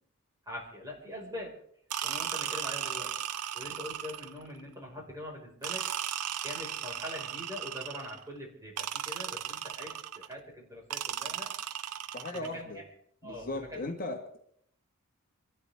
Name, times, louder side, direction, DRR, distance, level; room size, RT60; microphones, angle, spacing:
voice 1, 0.5-1.6 2.0-3.1 3.5-6.1 6.4-11.5 12.3-12.7 13.2-13.9, left 1 dB, 15° right, -2 dB, 5.4 m, -43 dB
sound 1, 1.9-4.5 5.6-8.2 8.8-10.3 10.9-12.5, right 10 dB, 85° right, 0.7 m, -36 dB
voice 2, 12.1-12.8 13.2-14.4, left 2 dB, 40° left, 1 dB, 1.7 m, -37 dB
28.0 x 13.5 x 3.6 m, 0.66 s
head